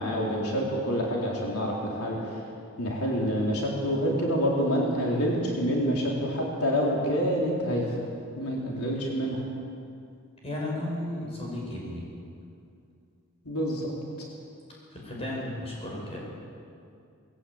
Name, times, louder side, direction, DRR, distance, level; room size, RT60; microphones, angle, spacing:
voice 1, 0.0-2.2 2.8-7.8 8.3-9.4 13.4-13.9, equal, 85° left, -3 dB, 4.0 m, -27 dB
voice 2, 10.4-12.1 14.9-16.2, left 1 dB, 25° left, -3 dB, 6.5 m, -34 dB
20.5 x 15.5 x 8.8 m, 2.4 s
head